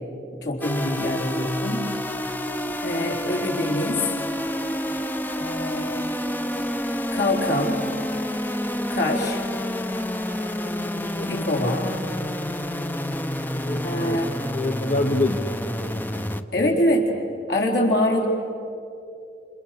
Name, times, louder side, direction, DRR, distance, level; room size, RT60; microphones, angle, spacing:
voice 1, 0.4-1.8 2.8-4.0 5.4-6.2 7.1-7.8 8.9-9.4 11.3-11.9 13.8-14.3 16.5-17.1 17.5-18.3, left 1 dB, 70° left, -1 dB, 4.2 m, -24 dB
sound 1, 0.6-16.4, left 1 dB, 10° left, 0.7 m, -29 dB
voice 2, 10.6-11.4 13.5-14.2 14.5-15.7 16.1-16.3 16.5-16.8, left 2 dB, 45° left, 6 dB, 1.0 m, -28 dB
29.5 x 28.5 x 6.8 m, 2.8 s
head